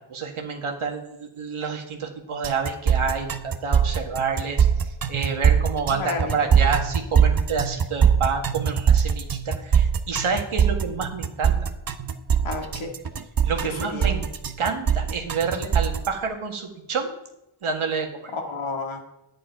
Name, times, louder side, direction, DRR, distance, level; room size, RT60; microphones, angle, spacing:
voice 1, 0.1-4.7 5.1-11.7 13.4-14.3 14.6-17.1 17.6-18.3, right 5 dB, 80° right, 2 dB, 1.7 m, -28 dB
sound 1, 2.4-16.1, right 7 dB, 45° right, 0.8 m, -22 dB
voice 2, 5.9-6.5 12.4-12.9 13.6-14.1 18.3-19.0, left 3 dB, 75° left, 2 dB, 2.1 m, -31 dB
11.5 x 9.9 x 4.7 m, 0.88 s
wide cardioid pair, 85°, 48 cm